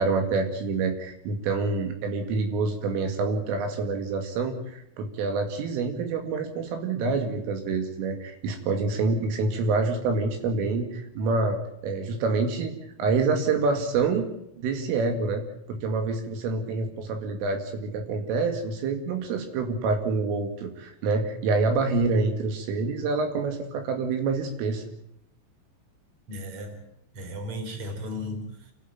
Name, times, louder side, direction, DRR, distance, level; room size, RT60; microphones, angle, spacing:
voice 1, 0.0-12.7 13.0-14.3 14.6-24.8, right 4 dB, 80° right, 5 dB, 4.8 m, -27 dB
voice 2, 26.3-26.8 27.1-28.7, left 1 dB, 30° right, 5 dB, 4.3 m, -35 dB
28.5 x 12.0 x 9.3 m, 0.76 s
omnidirectional pair, 5.9 m